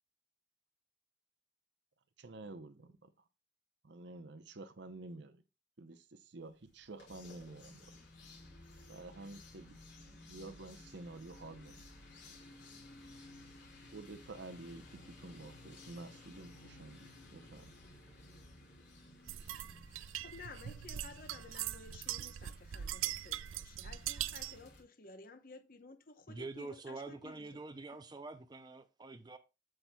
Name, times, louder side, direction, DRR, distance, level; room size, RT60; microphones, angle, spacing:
voice 1, 2.2-3.1 3.8-5.4 5.8-7.9 8.9-9.8 10.2-11.8 13.1-13.2 13.9-17.7, right 2 dB, 60° right, 0.8 m, -50 dB
sound 1, 6.7-24.8, left 2 dB, 65° left, 3.3 m, -56 dB
sound 2, 19.3-24.6, right 12 dB, 85° right, 0.4 m, -41 dB
voice 2, 20.2-27.5, left 3 dB, 45° left, 0.9 m, -54 dB
voice 3, 26.3-29.4, right 3 dB, 20° right, 0.4 m, -46 dB
8.0 x 7.7 x 2.3 m
head